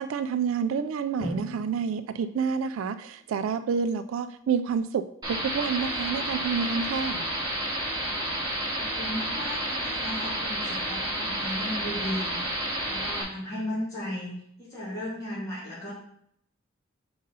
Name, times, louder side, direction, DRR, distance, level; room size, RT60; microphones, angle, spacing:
voice 1, 0.0-5.0 5.3-7.3, right 6 dB, 75° right, 12 dB, 0.3 m, -28 dB
Drum, 1.2-3.7, equal, 70° left, 1.5 m, -41 dB
sound 1, 5.2-13.2, right 1 dB, 20° right, 1.8 m, -30 dB
voice 2, 8.8-14.3 14.6-15.9, left 1 dB, 15° left, -8 dB, 2.2 m, -35 dB
5.3 x 3.9 x 5.3 m, 0.69 s
head